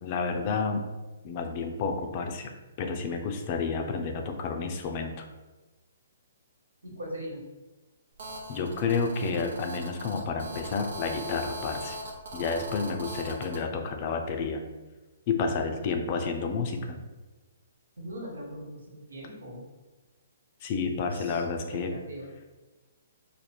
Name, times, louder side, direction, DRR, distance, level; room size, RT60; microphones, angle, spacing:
voice 1, 0.0-0.9 1.2-2.5 2.8-5.1 8.5-12.0 12.3-14.6 15.3-17.0 20.6-21.9, left 4 dB, 40° left, 4 dB, 0.5 m, -30 dB
voice 2, 6.8-7.4 18.0-19.6 21.1-22.3, equal, 80° right, -2 dB, 1.3 m, -40 dB
Telephone, 8.2-13.6, right 1 dB, 65° right, 0.7 m, -40 dB
3.4 x 2.1 x 4.3 m, 1.2 s
hypercardioid pair, 130°, 0 cm